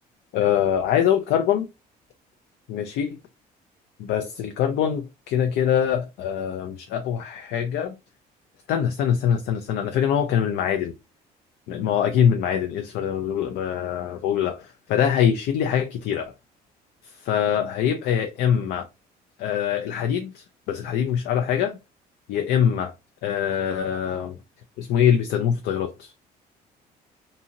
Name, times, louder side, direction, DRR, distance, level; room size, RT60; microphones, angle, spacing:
voice 1, 0.3-1.7 2.7-3.2 4.0-8.0 8.7-10.9 11.7-16.3 17.0-18.9 19.4-21.8 22.3-22.9 23.2-24.4 24.8-26.1, left 9 dB, 75° left, 0.4 m, -23 dB
2.6 x 2.5 x 2.8 m
cardioid pair, 110°, 17 cm